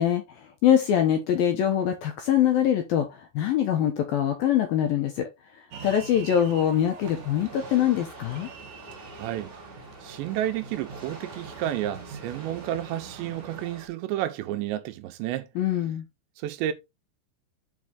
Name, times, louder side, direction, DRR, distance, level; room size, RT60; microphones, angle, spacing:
voice 1, 0.0-5.3 5.8-8.5 15.6-16.1, left 10 dB, 75° left, 2.2 m, -23 dB
sound 1, 5.7-13.6, right 6 dB, 70° right, 1.7 m, -44 dB
sound 2, 7.0-13.9, right 1 dB, 20° right, 1.7 m, -46 dB
voice 2, 9.1-9.5 10.0-15.5 16.4-16.7, right 12 dB, 85° right, 2.9 m, -31 dB
7.5 x 4.9 x 3.6 m
omnidirectional pair, 5.3 m